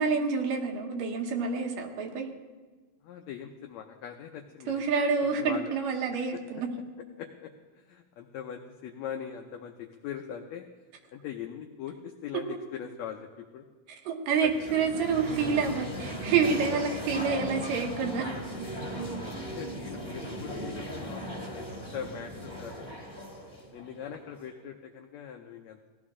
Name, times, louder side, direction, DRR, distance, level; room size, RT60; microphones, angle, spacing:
voice 1, 0.0-2.3 4.7-6.7 14.1-18.3, right 5 dB, 80° right, 3 dB, 2.8 m, -28 dB
voice 2, 3.0-4.8 5.4-5.7 6.3-6.4 7.2-10.7 11.1-13.7 14.4-14.8 19.0-21.7 21.9-23.0 23.7-25.9, left 8 dB, 85° left, 4 dB, 1.5 m, -41 dB
sound 1, 14.5-24.5, right 1 dB, 10° right, 1.3 m, -37 dB
17.5 x 13.0 x 3.7 m, 1.3 s
omnidirectional pair, 3.9 m